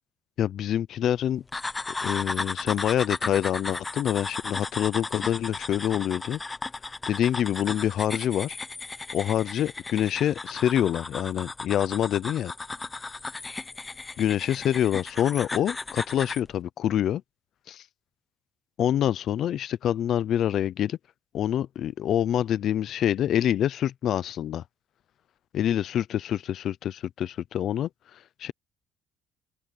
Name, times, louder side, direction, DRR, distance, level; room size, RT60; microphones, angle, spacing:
voice 1, 0.4-1.4 2.0-6.4 7.1-8.6 9.1-12.5 14.2-17.2 17.7-17.8 18.8-21.0 21.3-24.6 25.5-27.9 28.4-28.5, left 10 dB, 45° left, 0.5 m, -26 dB
sound 1, 1.5-16.5, left 3 dB, 15° left, 0.9 m, -35 dB
open air
cardioid pair, 160°, 0 cm